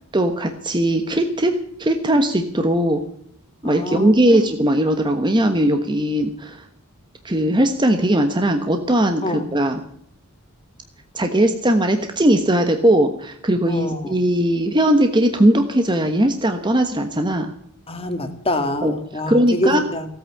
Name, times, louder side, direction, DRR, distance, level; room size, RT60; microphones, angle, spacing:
voice 1, 0.1-3.0 3.6-6.6 7.2-9.8 11.1-17.5 18.8-18.9 19.3-19.8, right 1 dB, 20° right, 6 dB, 1.2 m, -19 dB
voice 2, 3.6-4.5 9.2-9.5 13.7-14.2 17.9-20.1, left 1 dB, 25° left, 7 dB, 2.1 m, -25 dB
16.5 x 9.0 x 8.4 m, 0.66 s
head